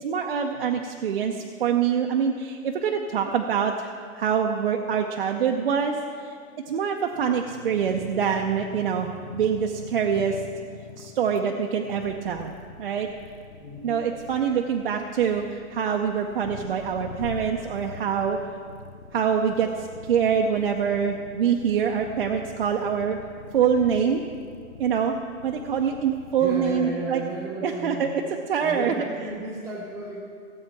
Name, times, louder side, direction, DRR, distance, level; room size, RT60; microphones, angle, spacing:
voice 1, 0.0-6.3 6.7-10.4 11.0-12.5 12.8-13.1 13.8-18.4 19.1-23.2 23.5-24.2 24.8-25.1 25.4-27.2 27.6-28.1 28.5-29.1, right 7 dB, 45° right, 2 dB, 0.5 m, -25 dB
sound 1, 7.1-26.7, left 4 dB, 35° left, 0.4 m, -44 dB
voice 2, 13.6-14.0 26.4-28.1 28.6-30.2, right 2 dB, 5° right, -2 dB, 0.9 m, -34 dB
16.0 x 8.0 x 4.5 m, 2.2 s
hypercardioid pair, 175°, 41 cm